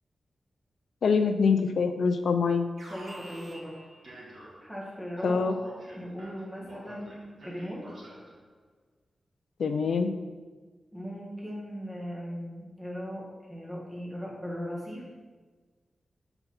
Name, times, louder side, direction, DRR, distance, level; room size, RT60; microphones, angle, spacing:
voice 1, 1.0-2.7 5.2-5.6 9.6-10.1, left 5 dB, 85° left, 8 dB, 0.4 m, -24 dB
Alarm, 2.8-4.8 5.2-8.4, right 1 dB, 55° right, 2.0 m, -47 dB
voice 2, 2.9-3.8 4.6-5.5 6.0-7.9 10.9-15.1, equal, 10° right, -4 dB, 1.9 m, -38 dB
5.8 x 3.9 x 5.9 m, 1.4 s
wide cardioid pair, 120°, 0 cm